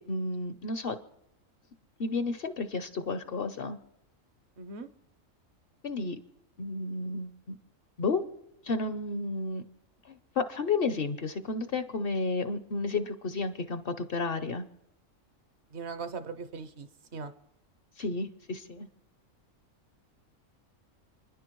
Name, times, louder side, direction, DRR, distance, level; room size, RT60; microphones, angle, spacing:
voice 1, 0.1-1.0 2.0-3.8 5.8-6.2 6.6-7.5 8.0-8.2 8.6-9.6 10.0-14.6 18.0-18.9, left 3 dB, 55° left, 10 dB, 0.8 m, -32 dB
voice 2, 4.6-4.9 15.7-17.3, right 4 dB, 60° right, 11 dB, 0.9 m, -40 dB
29.5 x 10.5 x 3.0 m, 0.86 s
omnidirectional pair, 1.4 m